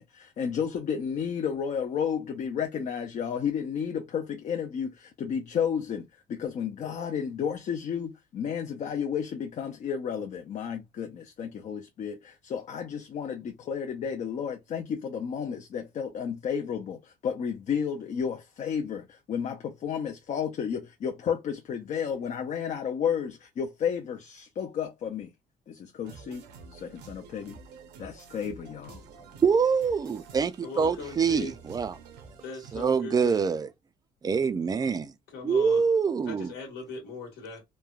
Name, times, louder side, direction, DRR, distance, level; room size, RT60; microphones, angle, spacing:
voice 1, 0.0-25.3 25.7-27.6 28.0-29.0, left 7 dB, 45° left, 0.5 m, -32 dB
sound 1, 26.0-32.9, right 5 dB, 85° right, 0.7 m, -49 dB
voice 2, 29.4-32.0 32.7-33.7 34.2-35.0 35.4-36.5, right 6 dB, 25° right, 0.3 m, -25 dB
voice 3, 30.6-31.6 32.4-33.5 35.3-35.8 36.2-37.6, left 4 dB, 75° left, 1.3 m, -39 dB
3.1 x 2.1 x 2.3 m
cardioid pair, 110°, 17 cm